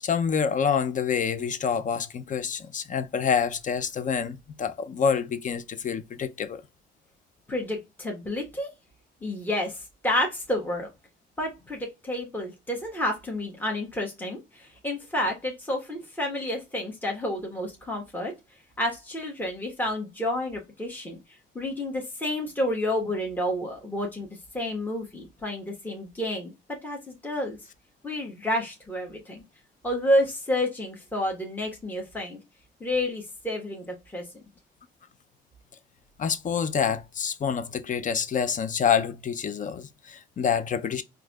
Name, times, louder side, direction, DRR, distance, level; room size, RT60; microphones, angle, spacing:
voice 1, 0.0-6.6 36.2-41.0, left 7 dB, 40° left, 0.5 m, -27 dB
voice 2, 7.5-8.7 9.2-10.9 11.4-18.3 18.8-21.2 21.5-24.3 24.5-26.5 26.8-27.6 28.0-29.4 29.8-32.4 32.8-33.8 34.1-34.3, left 1 dB, 10° left, 1.2 m, -30 dB
4.6 x 2.6 x 2.3 m
cardioid pair, 90°, 20 cm